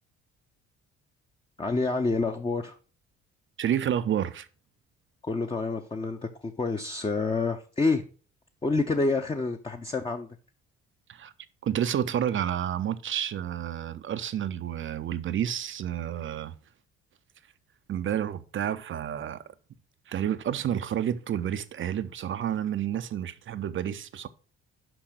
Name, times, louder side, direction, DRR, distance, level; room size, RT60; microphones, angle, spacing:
voice 1, 1.6-2.8 5.2-8.0 8.6-10.3, left 3 dB, 15° left, 0.7 m, -28 dB
voice 2, 3.6-4.5 11.1-11.3 11.6-16.5 17.9-19.4 20.1-24.3, right 10 dB, 35° right, 0.6 m, -30 dB
6.0 x 5.7 x 6.2 m
figure-of-eight pair, 45°, 34 cm